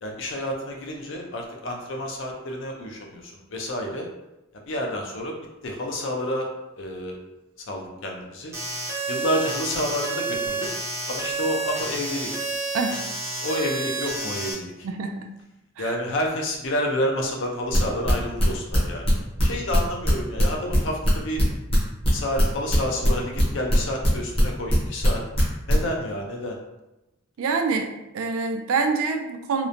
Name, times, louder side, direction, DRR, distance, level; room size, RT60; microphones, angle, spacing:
voice 1, 0.0-4.1 4.7-5.4 5.6-6.5 6.8-7.2 7.7-8.5 9.1-10.7 11.1-12.5 13.4-14.7 15.8-19.1 19.4-21.4 22.1-25.2 25.7-26.6, left 1 dB, 60° left, 1 dB, 0.5 m, -29 dB
sound 1, 8.5-14.5, right 3 dB, 15° right, 0.5 m, -30 dB
voice 2, 14.8-15.3 15.8-16.0 27.4-29.7, right 4 dB, 80° right, 5 dB, 0.3 m, -26 dB
sound 2, 17.7-23.4 23.7-25.1 25.3-25.7, equal, 25° left, 0.7 m, -20 dB
2.9 x 2.1 x 2.5 m, 0.95 s
head